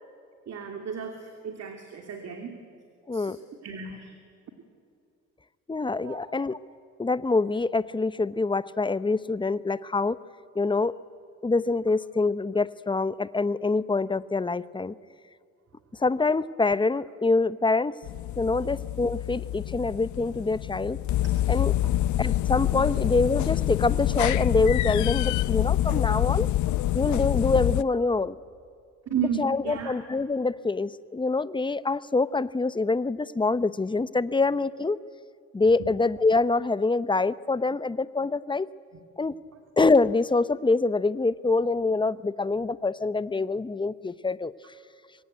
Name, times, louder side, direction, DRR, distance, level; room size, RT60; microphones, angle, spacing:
voice 1, 0.5-2.6 3.1-3.4 3.6-4.2 6.0-6.2 21.8-21.9 29.1-29.9 39.5-39.6, right 6 dB, 60° right, 4 dB, 2.8 m, -33 dB
voice 2, 5.7-6.6 7.0-10.2 10.5-11.0 11.4-14.9 16.0-18.0 18.4-21.0 21.5-21.7 22.2-26.5 26.9-28.4 29.4-35.0 35.5-38.7 39.2-39.4 39.8-44.5, left 3 dB, 15° left, 16 dB, 0.7 m, -25 dB
sound 1, 18.0-27.8, left 14 dB, 75° left, 0.6 m, -26 dB
25.0 x 22.0 x 9.5 m, 2.4 s
cardioid pair, 90°, 30 cm